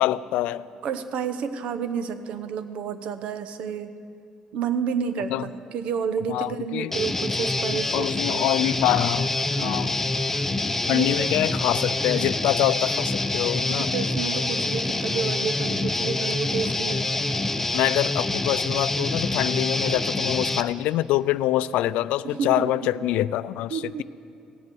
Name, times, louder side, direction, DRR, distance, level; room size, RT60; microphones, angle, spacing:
voice 1, 0.0-0.7 5.3-5.5 6.3-6.9 7.9-9.3 9.6-10.0 10.9-13.9 16.9-17.0 17.7-24.0, left 14 dB, 85° left, 17 dB, 0.3 m, -25 dB
voice 2, 0.8-3.9 4.5-8.4 9.6-10.0 10.9-11.3 13.7-17.3 22.2-22.7 23.0-23.1 23.7-24.0, right 6 dB, 70° right, 11 dB, 0.8 m, -30 dB
Guitar, 6.9-20.6, left 2 dB, 15° left, 0.6 m, -26 dB
17.5 x 8.0 x 7.0 m, 2.5 s
cardioid pair, 100°, 2 cm